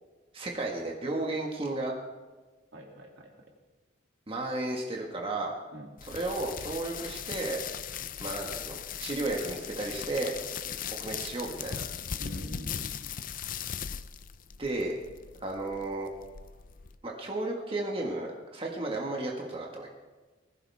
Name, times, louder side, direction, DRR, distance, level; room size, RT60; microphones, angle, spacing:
voice 1, 0.3-1.9 4.3-5.5 6.1-7.6 8.2-10.3 11.0-11.8 14.6-15.0 15.4-16.1 17.0-19.9, right 2 dB, 30° right, -1 dB, 1.8 m, -33 dB
voice 2, 2.7-3.3 5.7-5.9 12.2-13.1, right 1 dB, 75° right, 0 dB, 2.9 m, -45 dB
sound 1, 6.0-17.0, left 8 dB, 45° left, 0.5 m, -39 dB
19.5 x 16.0 x 3.6 m, 1.2 s
head